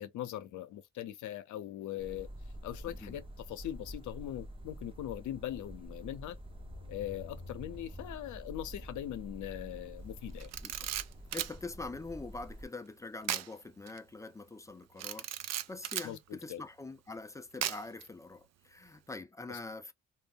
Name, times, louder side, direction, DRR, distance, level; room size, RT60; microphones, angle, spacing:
voice 1, 0.0-2.3 2.6-6.4 6.9-10.5 16.0-16.6 19.5-19.6, left 12 dB, 75° left, 0.6 m, -41 dB
sound 1, 2.0-12.7, equal, 20° right, 0.7 m, -48 dB
voice 2, 2.9-3.2 10.6-10.9 11.3-19.9, left 3 dB, 10° left, 0.3 m, -44 dB
sound 2, 6.4-10.9, left 4 dB, 85° right, 1.1 m, -55 dB
Camera, 10.4-11.6 13.2-13.5 13.9-14.0 15.0-16.1 17.6-18.0, right 11 dB, 60° right, 0.4 m, -36 dB
2.3 x 2.1 x 3.4 m
cardioid pair, 90°, 30 cm